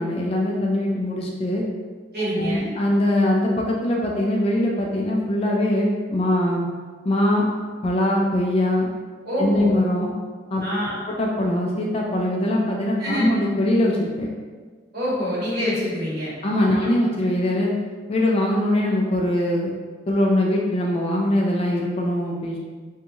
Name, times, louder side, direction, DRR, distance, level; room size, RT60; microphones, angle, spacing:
voice 1, 0.0-1.6 2.4-6.7 7.0-7.4 7.8-8.9 9.4-10.1 10.5-10.6 11.1-14.3 16.4-17.7 18.1-19.7 20.1-22.6, left 1 dB, 30° left, -1 dB, 0.3 m, -22 dB
voice 2, 2.1-2.7 9.2-9.8 10.6-11.0 13.0-13.3 14.9-16.3 16.7-16.9, equal, 55° right, -10 dB, 1.3 m, -26 dB
2.6 x 2.3 x 3.0 m, 1.4 s
head